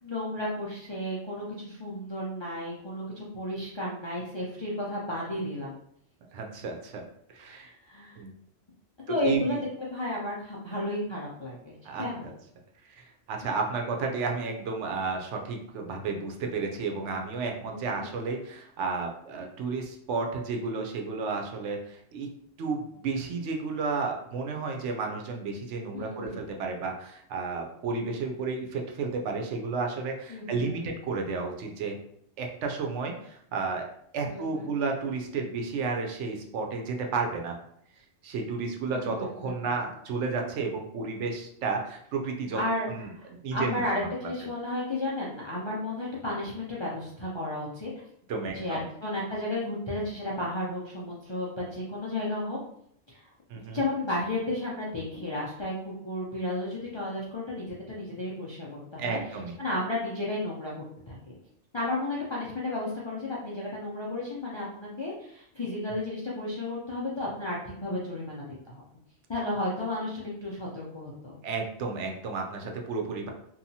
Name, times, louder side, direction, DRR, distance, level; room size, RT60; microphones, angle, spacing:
voice 1, 0.0-5.8 7.5-8.2 9.1-12.3 17.6-18.1 25.9-26.5 30.3-30.9 34.3-34.7 38.9-39.8 42.5-47.9 48.5-52.6 53.1-53.2 53.7-59.2 59.6-60.7 61.1-61.4 61.7-68.8 69.3-71.4, left 1 dB, 50° left, -6 dB, 0.3 m, -33 dB
voice 2, 6.3-7.0 7.3-7.7 8.2-8.3 9.1-9.6 11.8-12.3 13.0-22.3 22.6-32.0 32.4-33.9 34.1-37.6 38.2-42.6 42.9-44.1 48.3-48.8 53.5-53.8 59.0-59.5 71.4-73.3, right 4 dB, 85° right, 2 dB, 0.9 m, -32 dB
2.8 x 2.3 x 2.7 m, 0.69 s
omnidirectional pair, 1.2 m